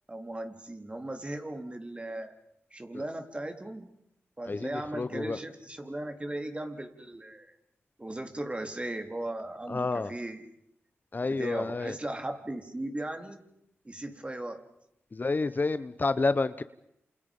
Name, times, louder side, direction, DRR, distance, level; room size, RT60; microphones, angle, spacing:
voice 1, 0.1-2.3 2.7-3.9 4.4-7.5 8.0-10.5 11.2-13.4 13.8-14.6, right 1 dB, 25° right, 6 dB, 3.7 m, -37 dB
voice 2, 5.0-5.4 9.7-10.1 11.1-11.9 15.1-16.6, left 3 dB, 40° left, 13 dB, 1.0 m, -29 dB
28.5 x 28.5 x 5.5 m, 0.78 s
cardioid pair, 60°, 5 cm